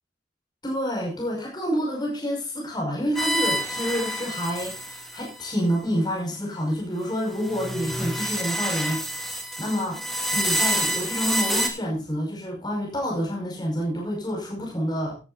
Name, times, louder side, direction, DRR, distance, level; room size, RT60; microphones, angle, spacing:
voice 1, 0.6-9.0 9.6-10.0 10.3-15.2, equal, 25° left, -1 dB, 5.2 m, -28 dB
sound 1, 3.2-5.4 7.3-11.7, equal, ahead, 2.3 m, -27 dB
15.5 x 12.0 x 2.5 m, 0.32 s
head